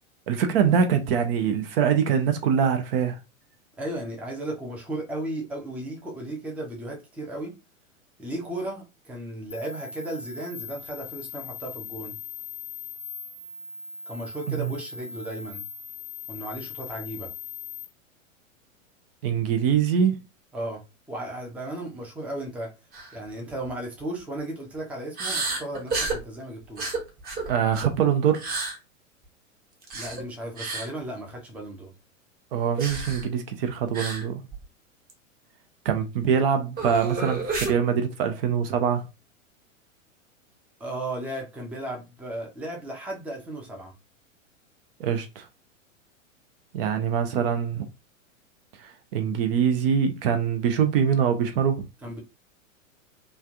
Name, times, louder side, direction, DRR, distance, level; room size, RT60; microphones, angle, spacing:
voice 1, 0.3-3.2 14.5-14.7 19.2-20.2 27.5-28.4 32.5-34.4 35.8-39.1 45.0-45.5 46.7-47.9 48.8-51.8, right 7 dB, 45° right, 0.6 m, -24 dB
voice 2, 3.8-7.5 8.2-12.2 14.1-15.6 16.3-17.3 20.5-20.8 21.1-22.7 23.1-26.9 29.9-31.9 40.8-43.9 52.0-52.2, right 1 dB, 5° right, 0.5 m, -35 dB
sound 1, 9.5-17.9, left 5 dB, 65° left, 0.8 m, -39 dB
sound 2, 22.9-23.1 23.5-23.7 25.2-26.2 26.8-28.0 28.3-28.8 29.8-30.2 30.6-30.9 32.8-33.3 33.9-34.3 34.5-34.6 35.1-35.2 36.8-37.8, right 3 dB, 20° right, 1.0 m, -30 dB
3.1 x 2.4 x 2.6 m
figure-of-eight pair, 105°, 40 cm